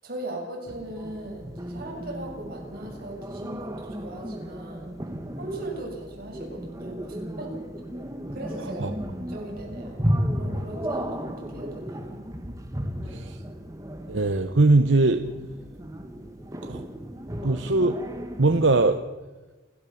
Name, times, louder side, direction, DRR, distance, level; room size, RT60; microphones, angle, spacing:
voice 1, 0.0-5.0 5.4-7.6 7.9-8.0 8.3-12.2, right 1 dB, 50° right, -1 dB, 7.3 m, -39 dB
sound 1, 0.7-19.0, equal, 15° right, 1.7 m, -34 dB
voice 2, 13.0-13.4 14.1-15.3 16.6-16.8 17.4-18.0 18.4-19.0, right 2 dB, 70° right, 7 dB, 0.9 m, -21 dB
28.5 x 14.0 x 7.1 m, 1.3 s
head